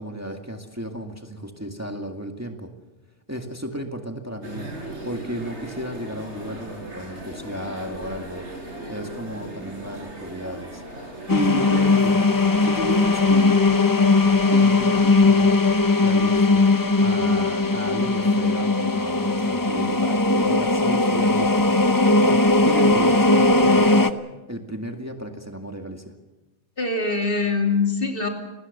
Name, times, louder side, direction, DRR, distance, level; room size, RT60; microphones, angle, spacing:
voice 1, 0.0-2.7 3.3-8.5 8.9-12.2 12.6-13.6 14.4-15.6 15.9-16.7 17.0-24.1 24.5-26.1, equal, 15° right, 3 dB, 2.0 m, -33 dB
sound 1, 4.4-13.4, right 1 dB, 90° right, 4.9 m, -37 dB
sound 2, 11.3-24.1, left 3 dB, 20° left, 0.7 m, -19 dB
voice 2, 26.8-28.3, left 4 dB, 55° left, 3 dB, 3.0 m, -23 dB
28.0 x 19.5 x 6.7 m, 1.1 s
omnidirectional pair, 1.2 m